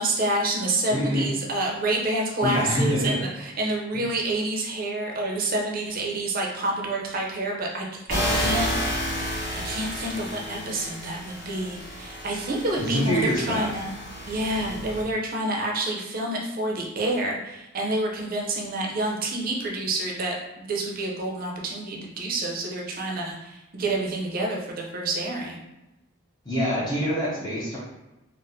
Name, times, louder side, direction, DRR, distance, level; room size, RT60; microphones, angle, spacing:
voice 1, 0.0-9.1 9.5-13.9 14.3-25.6, right 2 dB, 45° right, -1 dB, 0.5 m, -28 dB
voice 2, 0.9-1.3 2.4-3.2 3.9-4.0 8.3-8.5 12.8-13.7 26.4-27.8, equal, 20° left, -7 dB, 0.6 m, -25 dB
sound 1, 8.1-15.0, equal, 60° left, 1.1 m, -31 dB
4.1 x 2.0 x 2.6 m, 0.98 s
head